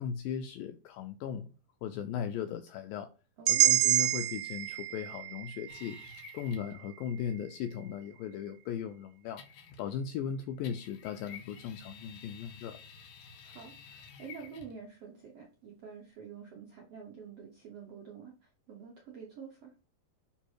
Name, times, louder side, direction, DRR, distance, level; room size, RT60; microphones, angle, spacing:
voice 1, 0.0-1.5 1.8-3.1 3.5-6.0 6.3-9.4 9.8-12.8, left 8 dB, 85° left, 2.0 m, -37 dB
voice 2, 3.4-3.8 13.4-19.7, right 6 dB, 70° right, 1.4 m, -48 dB
sound 1, 3.5-7.5, right 14 dB, 85° right, 1.9 m, -29 dB
sound 2, 5.7-6.8 9.4-10.1 10.6-14.8, left 6 dB, 65° left, 2.4 m, -51 dB
9.9 x 3.3 x 4.5 m
omnidirectional pair, 4.5 m